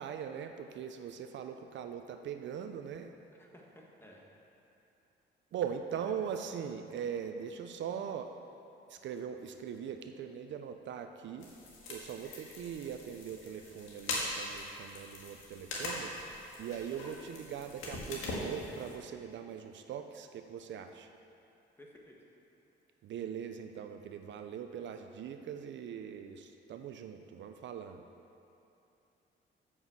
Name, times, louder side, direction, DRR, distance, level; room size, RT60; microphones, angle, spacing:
voice 1, 0.0-3.1 5.5-8.3 8.9-11.5 11.9-16.1 16.6-21.1 23.0-28.0, right 8 dB, 65° right, 7 dB, 0.5 m, -41 dB
voice 2, 3.4-4.2 5.9-6.1 21.8-22.2, equal, 10° left, -2 dB, 1.6 m, -55 dB
sound 1, 11.4-19.0, left 2 dB, 85° left, 1.8 m, -41 dB
7.1 x 6.4 x 7.2 m, 2.8 s
cardioid pair, 90°, 20 cm